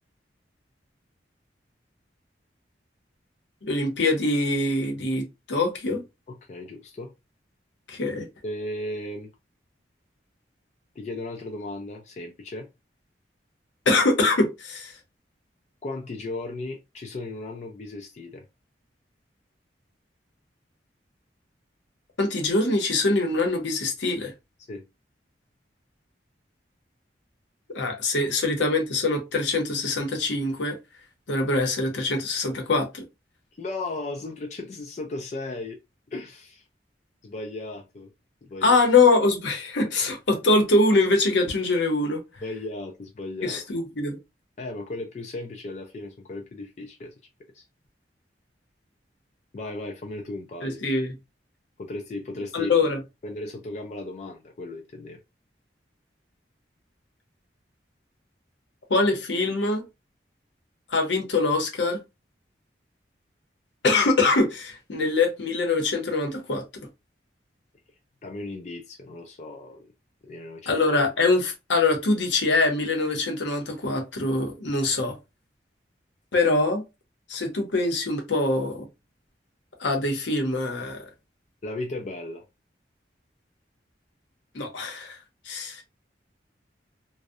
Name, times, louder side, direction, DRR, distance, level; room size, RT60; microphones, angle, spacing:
voice 1, 3.6-6.0 7.9-8.3 13.9-14.9 22.2-24.3 27.7-30.8 31.3-33.0 38.6-42.2 43.4-44.2 50.6-51.1 52.5-53.0 58.9-59.8 60.9-62.0 63.8-66.6 70.7-75.2 76.3-76.8 77.3-78.9 79.8-81.0 84.5-85.2 85.5-85.8, left 3 dB, 80° left, 0.7 m, -23 dB
voice 2, 6.3-7.1 8.4-9.3 11.0-12.7 15.8-18.4 24.7-24.8 33.6-35.8 36.1-36.6 37.2-38.1 38.4-38.8 42.4-43.6 44.6-47.1 47.5-47.7 49.5-50.8 51.8-52.7 53.2-55.2 68.2-69.9 70.2-70.7 81.6-82.4, left 2 dB, 40° left, 0.3 m, -36 dB
2.6 x 2.0 x 2.4 m
head